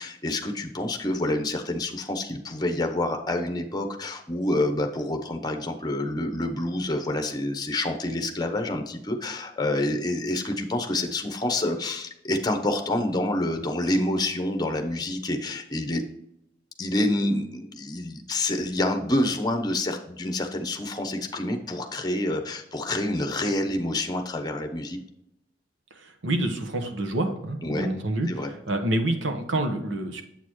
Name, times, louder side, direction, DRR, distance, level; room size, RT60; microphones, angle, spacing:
voice 1, 0.0-16.0 16.8-25.0 27.6-27.9 28.3-28.5, left 1 dB, 20° left, 5 dB, 0.8 m, -27 dB
voice 2, 25.9-30.2, right 1 dB, 90° right, 5 dB, 1.1 m, -28 dB
7.9 x 6.6 x 3.0 m, 0.80 s
head